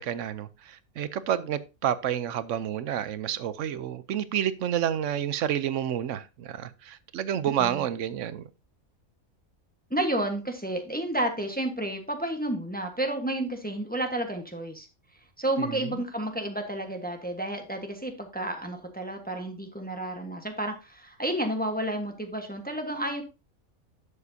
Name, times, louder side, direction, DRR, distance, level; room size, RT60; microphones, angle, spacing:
voice 1, 0.0-8.4 15.6-16.0, right 10 dB, 65° right, 1.0 m, -29 dB
voice 2, 7.4-7.8 9.9-14.9 15.4-23.2, right 1 dB, 5° left, 1.1 m, -31 dB
11.0 x 7.1 x 2.7 m
omnidirectional pair, 1.5 m